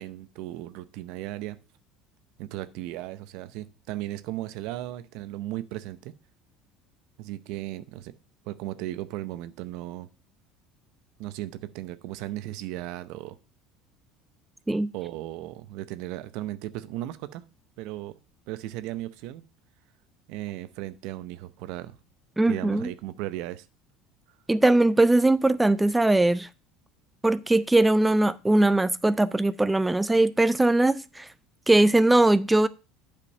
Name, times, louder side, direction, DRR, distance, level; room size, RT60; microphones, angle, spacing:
voice 1, 0.0-1.6 2.4-6.1 7.2-8.1 8.5-10.1 11.2-13.4 14.9-17.4 17.8-18.2 18.5-19.4 20.3-22.0 22.5-23.7, right 15 dB, 70° right, 0.6 m, -36 dB
voice 2, 22.4-22.9 24.5-26.5 27.2-31.3 31.7-32.7, right 2 dB, 10° right, 0.4 m, -20 dB
8.5 x 5.2 x 5.2 m
supercardioid pair, 100°, 0 cm